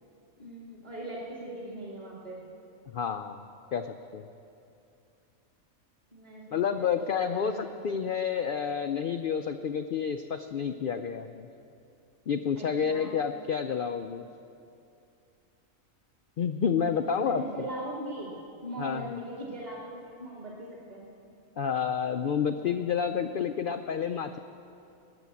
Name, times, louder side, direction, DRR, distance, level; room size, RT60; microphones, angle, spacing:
voice 1, 0.4-2.4 6.1-7.8 12.6-13.2 16.7-18.3 18.6-21.1, right 1 dB, 30° right, -4 dB, 2.2 m, -40 dB
voice 2, 2.9-3.4 3.7-4.3 6.5-11.5 12.3-14.3 16.4-17.4 18.8-19.2 21.6-24.4, left 7 dB, 75° left, 8 dB, 0.5 m, -29 dB
19.5 x 7.1 x 8.4 m, 2.7 s
omnidirectional pair, 1.4 m